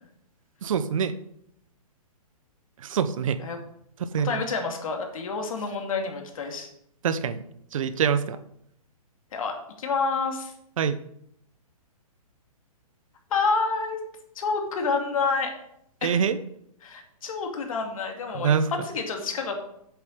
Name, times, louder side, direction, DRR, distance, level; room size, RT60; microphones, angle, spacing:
voice 1, 0.6-1.1 2.8-3.4 4.1-4.4 7.0-7.4 7.7-8.4 10.8-11.0 16.0-16.4 18.3-18.7, right 7 dB, 60° right, 12 dB, 0.8 m, -25 dB
voice 2, 4.2-6.7 9.3-10.5 13.3-14.0 14.4-15.5 16.0-16.1 16.8-19.6, left 4 dB, 60° left, 4 dB, 2.5 m, -28 dB
8.1 x 7.1 x 6.5 m, 0.74 s
hypercardioid pair, 155°, 19 cm